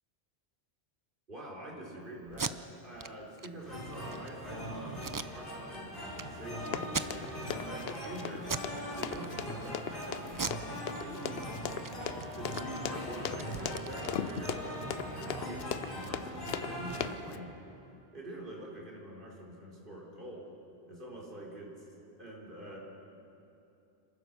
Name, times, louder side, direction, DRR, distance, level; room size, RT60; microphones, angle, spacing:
voice 1, 1.3-8.5 8.9-11.5 12.3-17.5 18.1-20.5 20.9-21.8 22.2-22.8, right 1 dB, 55° right, -3 dB, 4.4 m, -46 dB
Packing tape duct tape, 2.3-2.5 3.0-3.1 3.4-3.5 3.9-4.3 5.0-5.8 6.1-6.2 6.8-7.5 7.9-8.1 8.4-8.7 9.1-9.7 10.3-11.4 11.7-11.9 12.2-14.8, right 4 dB, 35° right, 0.3 m, -39 dB
sound 1, 3.6-17.1, equal, 55° left, 5.4 m, -41 dB
Run, 6.6-17.4, left 8 dB, 70° left, 0.9 m, -38 dB
27.0 x 15.5 x 6.8 m, 2.9 s
omnidirectional pair, 1.1 m